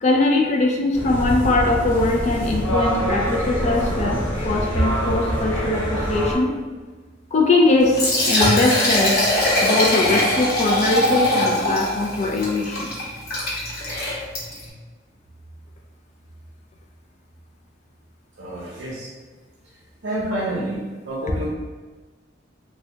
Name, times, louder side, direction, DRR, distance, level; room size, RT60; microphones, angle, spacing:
voice 1, 0.0-6.5 7.3-9.3 9.6-12.9, left 2 dB, 35° left, 1 dB, 0.4 m, -21 dB
sound 1, 0.9-6.3, equal, 90° left, 0.9 m, -24 dB
Liquid, 7.8-14.7, left 1 dB, 55° left, 0.9 m, -22 dB
voice 2, 18.4-19.1 20.0-20.8 21.1-21.5, right 1 dB, 65° right, -6 dB, 0.6 m, -28 dB
2.8 x 2.2 x 3.3 m, 1.3 s
head